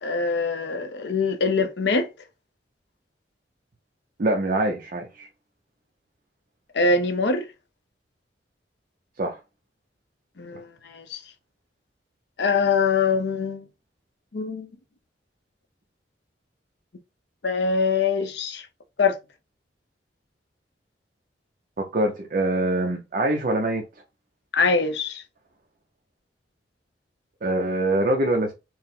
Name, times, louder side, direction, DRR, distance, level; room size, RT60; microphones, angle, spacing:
voice 1, 0.0-2.1 6.7-7.5 10.4-11.2 12.4-13.7 14.3-14.7 17.4-18.7 19.0-19.2 24.5-25.2, left 4 dB, 70° left, 0.7 m, -23 dB
voice 2, 4.2-5.3 9.2-9.3 10.5-10.6 21.8-23.8 27.4-28.5, right 1 dB, 50° right, 0.6 m, -24 dB
4.5 x 2.1 x 3.6 m
head